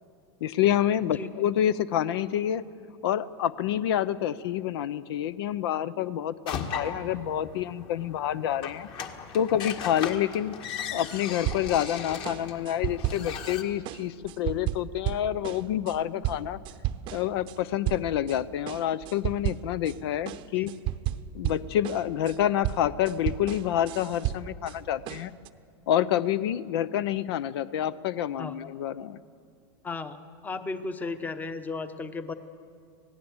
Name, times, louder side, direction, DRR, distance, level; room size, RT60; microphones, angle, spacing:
voice 1, 0.4-2.6 3.0-8.9 9.3-16.6 17.1-20.7 21.3-25.3 25.9-29.2, left 11 dB, 70° left, 16 dB, 0.7 m, -28 dB
sound 1, 6.5-13.6, left 7 dB, 40° left, 1.8 m, -38 dB
sound 2, 11.4-11.9 12.2-13.5 13.8-17.6 17.8-18.4 18.7-20.0 20.3-24.8 25.1-25.5, right 13 dB, 40° right, 0.8 m, -33 dB
voice 2, 29.8-30.2 30.4-32.3, left 3 dB, 10° left, 11 dB, 0.9 m, -35 dB
26.5 x 18.0 x 8.0 m, 2.4 s
supercardioid pair, 145°, 14 cm